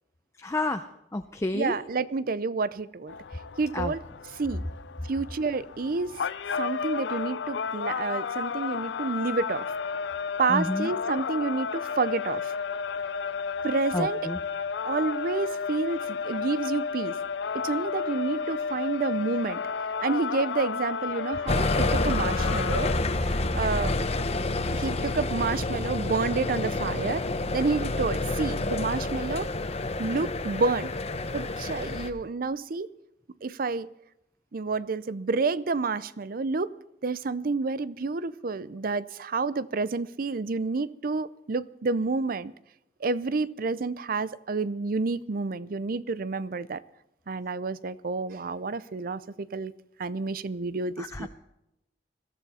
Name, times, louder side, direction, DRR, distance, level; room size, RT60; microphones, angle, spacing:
voice 1, 0.4-0.9 1.1-1.8 3.7-3.9 10.5-10.9 13.9-14.4 51.0-51.3, left 2 dB, 15° left, 7 dB, 0.6 m, -30 dB
voice 2, 1.5-3.1 3.6-4.0 4.4-4.6 5.1-6.2 6.6-9.7 10.4-12.5 13.6-14.2 14.9-17.2 17.5-19.6 20.0-22.9 23.2-23.9 24.7-27.2 27.5-29.5 30.0-30.9 31.3-32.9 33.4-33.9 34.5-36.7 37.0-42.5 43.0-46.8 47.3-49.7 50.0-51.3, right 4 dB, 55° right, 18 dB, 0.6 m, -29 dB
sound 1, 3.1-22.9, left 6 dB, 85° left, 0.5 m, -32 dB
sound 2, 21.5-32.1, left 2 dB, 35° left, 1.1 m, -28 dB
21.0 x 14.0 x 4.2 m, 0.85 s
head